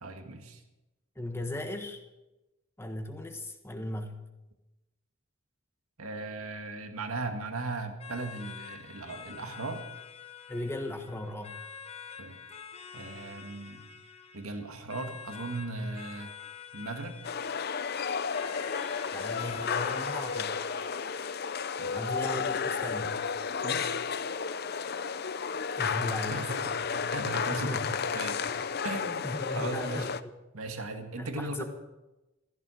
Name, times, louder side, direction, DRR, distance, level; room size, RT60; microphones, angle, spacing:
voice 1, 0.0-0.6 6.0-9.8 12.2-12.4 12.9-13.9 14.3-16.3 16.7-17.2 21.8-22.0 23.6-24.0 26.3-27.8 28.1-28.4 28.8-30.1 30.5-31.6, right 2 dB, 90° right, 5 dB, 2.0 m, -37 dB
voice 2, 1.1-2.0 2.8-4.2 10.5-11.6 19.1-20.6 21.9-23.2 25.5-26.5 27.5-27.9 28.5-28.7 29.2-30.3 31.2-31.6, left 1 dB, 10° left, 4 dB, 1.3 m, -37 dB
sound 1, 8.0-23.0, left 7 dB, 30° left, 1.1 m, -48 dB
sound 2, 17.2-30.2, left 6 dB, 45° left, 0.6 m, -32 dB
15.0 x 14.5 x 6.4 m, 1.0 s
head